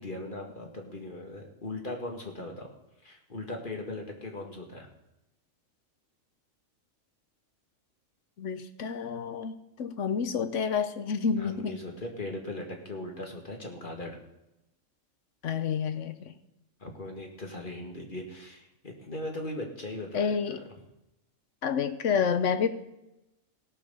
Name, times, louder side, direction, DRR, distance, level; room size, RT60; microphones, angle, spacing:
voice 1, 0.0-2.7 3.0-4.9 11.4-14.2 16.8-20.6, left 1 dB, 40° left, 2 dB, 2.1 m, -39 dB
voice 2, 8.4-11.8 15.4-16.3 20.1-20.6 21.6-22.7, left 6 dB, 65° left, 11 dB, 1.2 m, -29 dB
17.0 x 6.1 x 6.9 m, 0.89 s
omnidirectional pair, 1.4 m